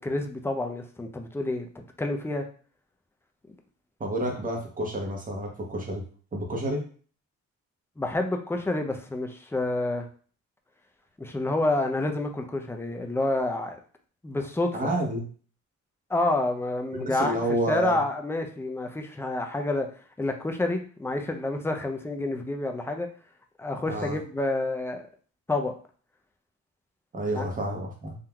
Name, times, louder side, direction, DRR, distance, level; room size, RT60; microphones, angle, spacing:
voice 1, 0.0-2.4 8.0-10.1 11.2-13.8 14.2-14.9 16.1-17.4 17.7-19.9 20.2-23.1 23.6-25.1 25.5-25.7 27.3-27.4, left 2 dB, 10° left, 4 dB, 0.5 m, -28 dB
voice 2, 4.0-6.0 6.3-6.8 14.7-15.2 16.9-18.0 23.8-24.2 27.1-28.2, right 1 dB, 25° right, 0 dB, 1.0 m, -29 dB
3.7 x 2.6 x 2.3 m, 0.42 s
cardioid pair, 90°, 30 cm